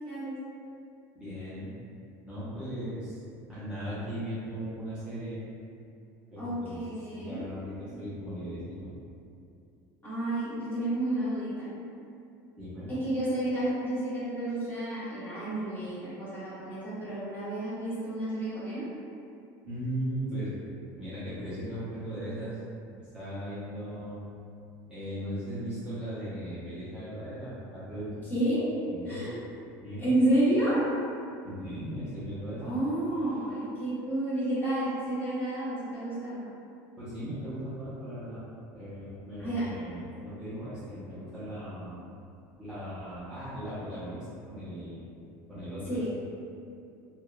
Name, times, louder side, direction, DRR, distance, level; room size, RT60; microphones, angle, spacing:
voice 1, 1.1-1.8 2.2-3.2 3.5-5.4 6.3-6.8 7.1-8.9 12.6-12.9 19.6-20.6 21.0-22.6 23.1-24.2 24.9-28.1 28.9-29.2 29.8-30.1 31.4-32.7 37.0-38.4 38.7-42.0 42.6-44.1 44.5-45.0 45.5-46.1, equal, 10° right, -14 dB, 0.7 m, -37 dB
voice 2, 6.4-7.4 7.9-8.0 10.0-11.7 12.9-18.8 28.3-28.6 29.0-29.3 30.0-30.8 32.6-36.4 39.4-39.6 45.9-46.1, right 1 dB, 20° left, -12 dB, 1.2 m, -30 dB
2.7 x 2.2 x 2.3 m, 2.5 s
supercardioid pair, 135°, 9 cm